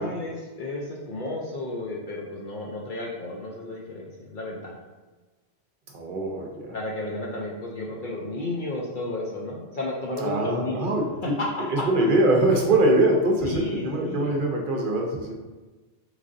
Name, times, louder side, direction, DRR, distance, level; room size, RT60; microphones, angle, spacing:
voice 1, 0.0-4.7 6.7-10.9 11.2-11.5 11.8-11.9 13.4-14.4, left 2 dB, 60° left, -3 dB, 0.6 m, -32 dB
voice 2, 5.9-6.7 10.2-11.4 11.7-15.3, right 2 dB, 55° right, 0 dB, 0.7 m, -23 dB
3.6 x 3.2 x 2.5 m, 1.2 s
omnidirectional pair, 1.2 m